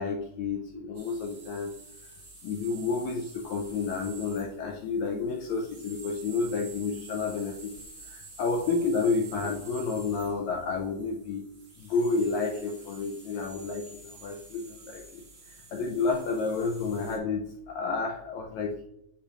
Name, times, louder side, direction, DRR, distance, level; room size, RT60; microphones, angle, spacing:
voice 1, 0.0-1.7 2.4-7.7 8.0-11.5 11.8-15.2 15.7-18.8, left 4 dB, 80° left, 1 dB, 1.7 m, -30 dB
sound 1, 0.9-17.2, right 3 dB, 40° right, 0.8 m, -49 dB
8.1 x 5.8 x 2.4 m, 0.78 s
omnidirectional pair, 3.7 m